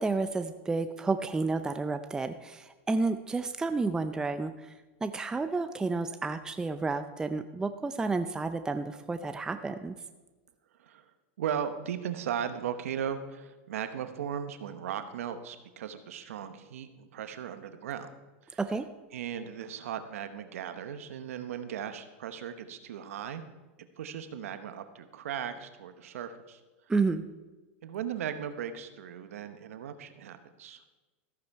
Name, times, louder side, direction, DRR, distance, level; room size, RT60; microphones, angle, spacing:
voice 1, 0.0-4.7 5.0-10.0 18.6-18.9 26.9-27.3, right 3 dB, 10° right, 9 dB, 0.4 m, -31 dB
voice 2, 11.4-18.1 18.4-18.6 19.1-23.4 24.0-26.6 27.8-30.9, right 8 dB, 85° right, 9 dB, 0.9 m, -37 dB
14.0 x 8.6 x 4.6 m, 1.2 s
supercardioid pair, 130°, 7 cm